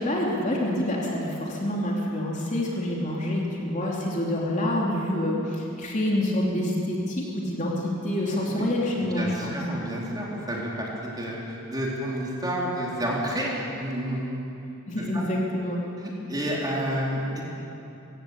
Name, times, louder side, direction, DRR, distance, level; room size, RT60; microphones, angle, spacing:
voice 1, 0.0-9.6 14.9-15.9, left 1 dB, 35° left, -3 dB, 3.4 m, -27 dB
voice 2, 8.4-8.8 9.0-14.3 15.0-15.2 16.0-17.4, equal, 20° right, -4 dB, 4.0 m, -30 dB
25.0 x 16.0 x 8.7 m, 2.8 s
head